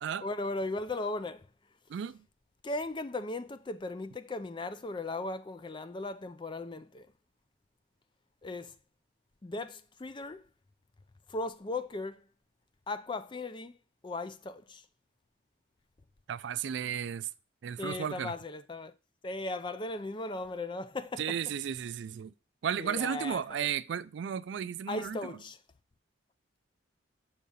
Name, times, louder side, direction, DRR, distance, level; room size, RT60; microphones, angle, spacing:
voice 1, 0.2-1.5 2.6-7.1 8.4-8.7 9.4-10.4 11.3-12.2 12.9-13.8 14.0-14.8 17.8-18.9 19.2-21.4 22.8-23.7 24.9-25.6, left 2 dB, 25° left, 0.4 m, -37 dB
voice 2, 1.9-2.2 16.3-17.3 17.6-18.3 21.2-22.3 22.6-25.4, right 8 dB, 65° right, 0.3 m, -34 dB
7.0 x 3.7 x 5.4 m
head